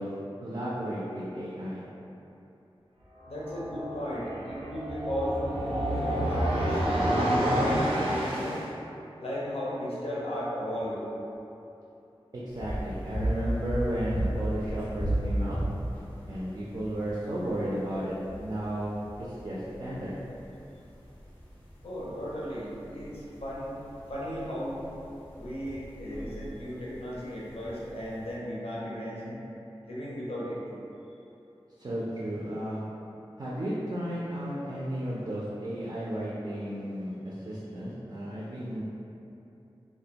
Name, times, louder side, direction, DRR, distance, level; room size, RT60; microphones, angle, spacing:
voice 1, 0.0-1.8 12.3-15.6 16.3-20.2 31.8-32.8 33.4-38.8, right 1 dB, 45° right, -7 dB, 0.4 m, -33 dB
sound 1, 3.2-8.7, equal, 85° right, 0.7 m, -29 dB
voice 2, 3.3-6.8 7.4-8.6 9.2-11.0 21.8-23.7 24.1-24.8 25.4-29.4 29.8-30.6, equal, 85° left, -7 dB, 0.5 m, -35 dB
sound 2, 12.5-28.4, right 1 dB, 15° left, 0.5 m, -36 dB
2.2 x 2.1 x 2.7 m, 2.8 s
wide cardioid pair, 45°, 10 cm